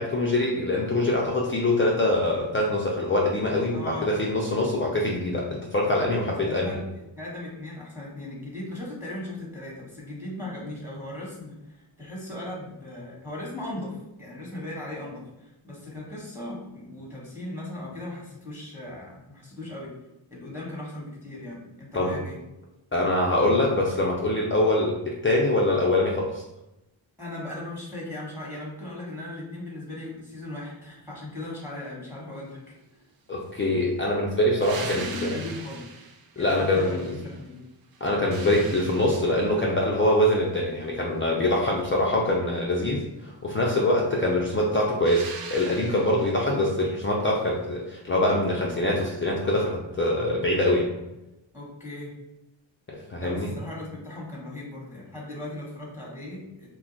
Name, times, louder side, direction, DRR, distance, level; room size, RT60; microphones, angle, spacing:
voice 1, 0.0-6.8 21.9-22.2 22.9-26.4 33.3-35.4 36.4-37.2 38.0-50.9 52.9-53.5, left 1 dB, 25° left, -2 dB, 0.4 m, -24 dB
voice 2, 3.7-4.1 6.2-19.9 20.3-22.4 27.2-32.8 34.9-35.9 36.4-37.6 51.5-52.1 53.2-56.7, left 1 dB, 5° right, -4 dB, 1.1 m, -38 dB
sound 1, 34.6-37.5 37.9-39.7 45.0-46.5 49.1-49.2, right 5 dB, 50° right, 0.5 m, -41 dB
2.3 x 2.2 x 3.8 m, 0.92 s
cardioid pair, 60°, 49 cm